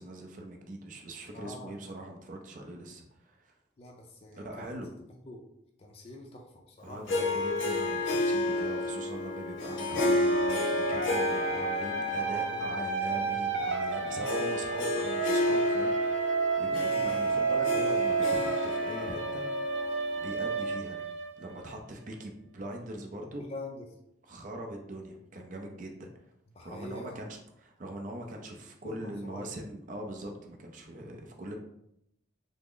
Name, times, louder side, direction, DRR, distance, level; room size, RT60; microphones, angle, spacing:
voice 1, 0.0-3.5 4.3-4.9 6.8-19.7 20.2-21.0 21.4-23.4 24.2-26.1 26.6-31.6, right 1 dB, 40° right, 2 dB, 0.5 m, -42 dB
voice 2, 1.3-1.7 3.8-4.8 5.3-5.4 5.8-7.0 12.2-12.8 13.2-13.4 16.6-17.1 23.4-23.8 26.5-27.3 28.8-29.5, left 2 dB, 30° left, 0 dB, 0.4 m, -45 dB
Harp, 7.1-20.7, left 2 dB, 80° left, 0.6 m, -32 dB
sound 1, 9.9-21.7, right 4 dB, 85° right, 0.6 m, -31 dB
3.5 x 2.0 x 3.7 m, 0.78 s
head